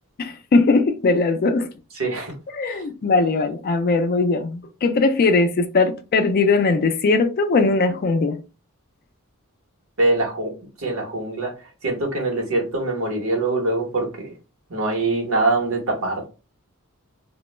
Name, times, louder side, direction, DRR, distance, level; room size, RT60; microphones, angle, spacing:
voice 1, 0.2-1.7 2.5-8.4, left 3 dB, 45° left, 0.3 m, -19 dB
voice 2, 2.0-2.3 2.7-2.8 10.0-10.5 10.8-11.5 11.8-14.3 14.7-16.3, right 2 dB, 70° right, 1.0 m, -23 dB
2.2 x 2.0 x 3.1 m
head